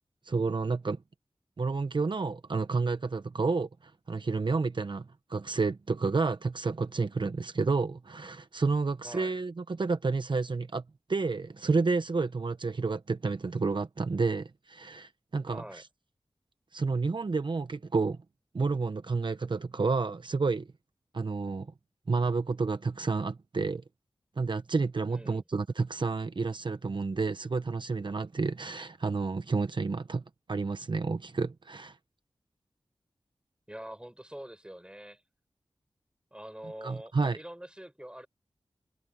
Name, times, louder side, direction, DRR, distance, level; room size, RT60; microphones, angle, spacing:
voice 1, 0.2-1.0 1.6-10.8 11.1-15.9 16.7-18.2 18.5-20.7 21.1-21.7 22.1-23.8 24.4-30.2 30.5-32.0 36.8-37.4, right 4 dB, 60° right, 0.8 m, -30 dB
voice 2, 15.5-15.8 25.1-25.4 33.7-35.2 36.3-38.3, equal, 10° right, 5.5 m, -45 dB
cardioid pair, 40°, 9 cm